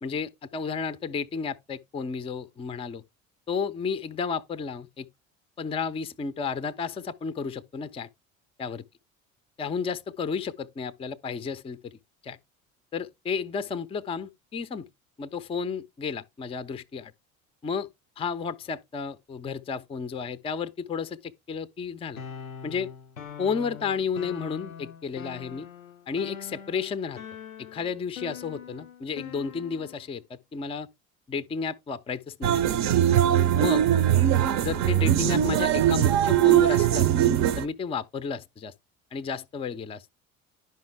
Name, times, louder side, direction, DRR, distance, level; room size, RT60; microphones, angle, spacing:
voice 1, 0.0-3.0 3.5-5.1 5.6-8.1 8.6-8.8 9.6-11.9 12.2-12.4 12.9-14.9 15.2-17.1 17.6-17.9 18.2-22.2 22.6-22.9 23.4-25.7 26.1-27.2 27.6-30.9 31.3-32.9 33.5-33.9 34.6-38.7 39.1-40.1, left 5 dB, 15° left, 0.5 m, -32 dB
sound 1, 22.2-30.0, left 7 dB, 90° left, 0.5 m, -43 dB
sound 2, 32.4-37.7, right 11 dB, 45° right, 0.6 m, -21 dB
10.5 x 5.5 x 3.3 m
figure-of-eight pair, 60°, 41 cm